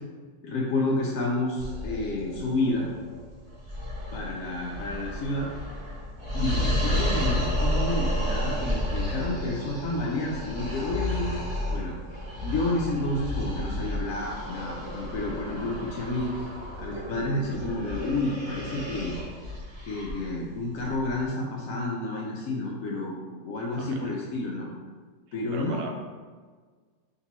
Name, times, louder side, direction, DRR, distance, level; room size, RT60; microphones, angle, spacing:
voice 1, 0.4-2.9 4.1-5.5 6.3-12.0 12.4-16.5 16.8-19.2 19.9-23.2 23.4-24.7 25.3-25.8, left 2 dB, 70° left, -3 dB, 0.8 m, -30 dB
sound 1, 1.6-21.3, equal, 25° right, 0.7 m, -32 dB
voice 2, 23.8-24.1 25.5-25.9, right 3 dB, 70° right, 2 dB, 1.1 m, -38 dB
3.9 x 2.6 x 4.1 m, 1.5 s
omnidirectional pair, 1.9 m